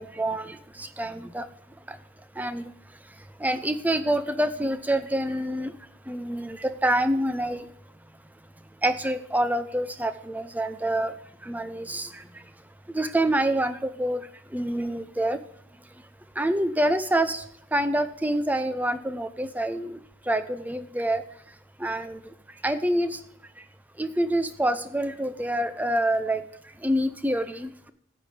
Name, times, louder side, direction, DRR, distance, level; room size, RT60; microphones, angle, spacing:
voice 1, 0.0-1.4 2.4-2.6 3.4-5.7 6.1-7.6 8.8-11.1 11.4-12.2 12.9-14.3 14.5-15.4 16.4-17.4 17.7-20.0 20.3-21.2 21.8-22.2 22.6-23.2 24.0-26.4 26.8-27.9, right 1 dB, 5° right, 11 dB, 0.5 m, -26 dB
11.0 x 8.4 x 3.3 m, 0.69 s
head